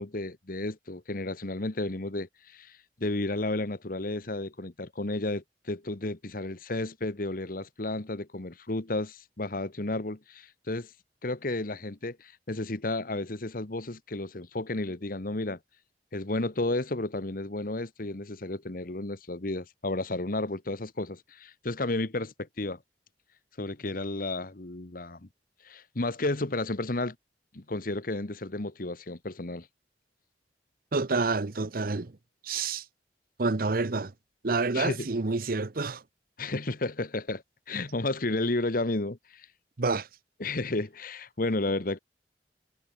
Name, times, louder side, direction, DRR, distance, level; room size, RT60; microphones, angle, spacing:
voice 1, 0.0-10.9 11.2-15.6 16.1-22.8 23.6-25.3 25.6-27.1 27.5-29.7 34.7-35.1 36.4-37.4 37.7-39.5 40.4-42.0, left 2 dB, 50° left, 1.3 m, -32 dB
voice 2, 30.9-32.1 32.4-32.8 33.4-34.1 34.4-36.0 39.8-40.1, right 3 dB, 55° right, 0.8 m, -28 dB
head